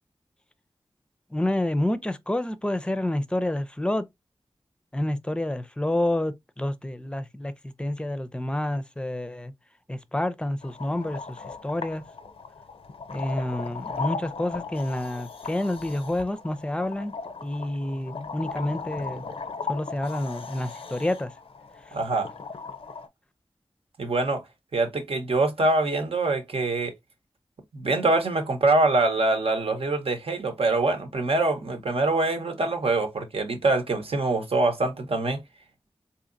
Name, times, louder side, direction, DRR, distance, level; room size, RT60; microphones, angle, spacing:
voice 1, 1.3-4.1 4.9-9.5 9.9-12.0 13.1-17.1 17.4-19.2 19.7-21.3 21.9-22.0, left 1 dB, 10° left, 0.5 m, -29 dB
sound 1, 10.6-23.1, left 4 dB, 75° left, 0.5 m, -37 dB
voice 2, 21.9-22.3 24.0-24.4 24.7-26.9 27.7-35.4, right 2 dB, 80° right, 0.9 m, -24 dB
3.9 x 2.8 x 2.5 m
wide cardioid pair, 55°, 10 cm